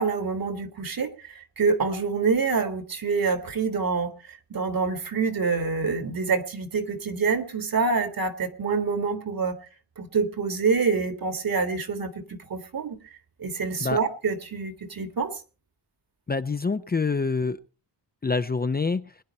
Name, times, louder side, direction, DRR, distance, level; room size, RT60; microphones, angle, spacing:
voice 1, 0.0-4.1 4.5-9.6 10.0-13.0 13.4-15.4, right 4 dB, 60° right, 9 dB, 2.1 m, -26 dB
voice 2, 16.3-17.6 18.2-19.2, left 4 dB, 25° left, 11 dB, 0.6 m, -26 dB
22.0 x 10.0 x 4.3 m, 0.37 s
cardioid pair, 75°, 40 cm